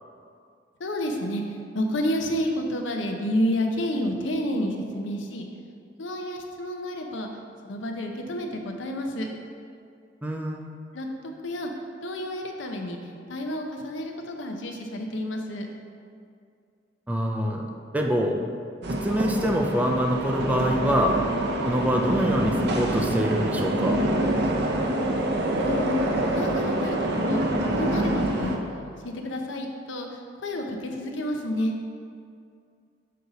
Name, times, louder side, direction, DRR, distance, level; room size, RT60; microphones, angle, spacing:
voice 1, 0.8-1.4 1.7-5.5 6.0-7.3 7.6-9.3 10.9-11.1 11.4-11.7 12.0-13.0 13.3-15.7 25.6-26.1 26.3-27.4 27.7-30.1 30.4-31.7, left 1 dB, 80° left, 3 dB, 0.7 m, -30 dB
voice 2, 10.2-10.7 17.1-17.7 17.9-18.4 18.9-21.2 21.7-24.0, equal, 10° right, 1 dB, 0.4 m, -25 dB
sound 1, 18.8-28.6, right 1 dB, 65° right, 0.6 m, -26 dB
6.4 x 4.0 x 3.9 m, 2.3 s
head